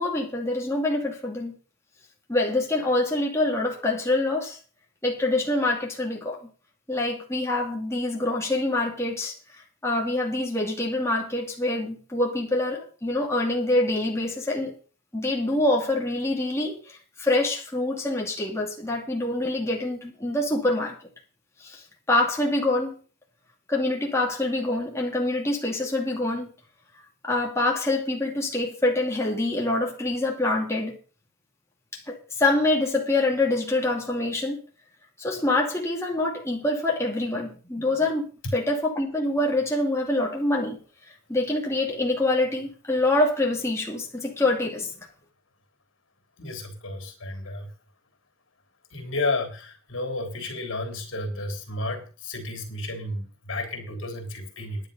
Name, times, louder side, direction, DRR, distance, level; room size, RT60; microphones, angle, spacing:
voice 1, 0.0-1.6 2.3-4.6 5.0-6.5 6.9-9.3 9.8-14.8 15.1-21.0 21.6-23.0 23.7-26.5 27.2-31.0 32.1-34.6 35.2-40.8 41.3-44.9, left 2 dB, 15° left, 2.4 m, -25 dB
voice 2, 46.4-47.7 48.9-54.9, left 2 dB, 70° left, 3.3 m, -32 dB
10.5 x 10.0 x 5.4 m
head